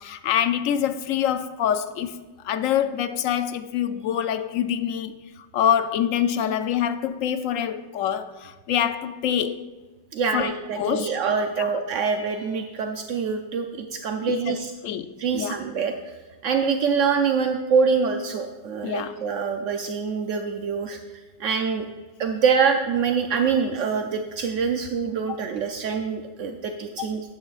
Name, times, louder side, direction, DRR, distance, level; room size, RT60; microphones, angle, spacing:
voice 1, 0.0-2.2 2.4-5.2 5.5-9.7 10.3-11.1 11.6-11.8 14.5-14.6 14.8-15.6 18.8-19.1 27.0-27.1, left 9 dB, 75° left, 1.0 m, -25 dB
voice 2, 10.1-14.7 15.2-15.9 16.4-21.0 21.4-21.8 22.2-27.2, right 5 dB, 70° right, 0.9 m, -25 dB
12.5 x 8.7 x 2.4 m
omnidirectional pair, 1.4 m